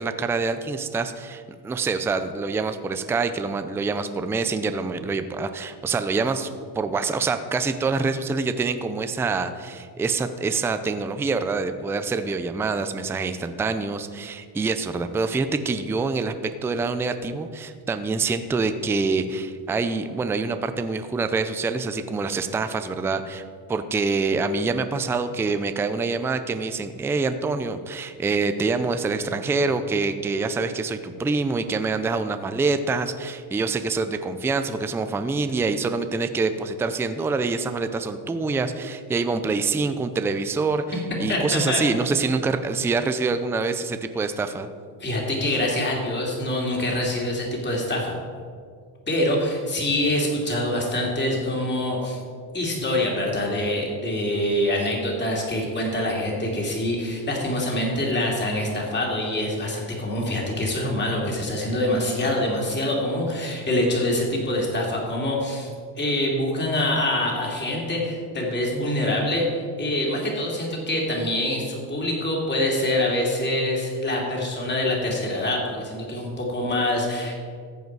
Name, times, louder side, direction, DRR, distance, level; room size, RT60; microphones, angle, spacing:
voice 1, 0.0-6.5 6.8-16.3 16.6-23.4 23.7-44.7, right 4 dB, 5° right, 9 dB, 0.3 m, -26 dB
voice 2, 41.3-41.8 45.0-48.1 49.1-52.2 52.5-65.7 66.0-77.3, left 1 dB, 25° left, -1 dB, 2.9 m, -25 dB
14.0 x 8.0 x 4.7 m, 2.1 s
cardioid pair, 130°, 45 cm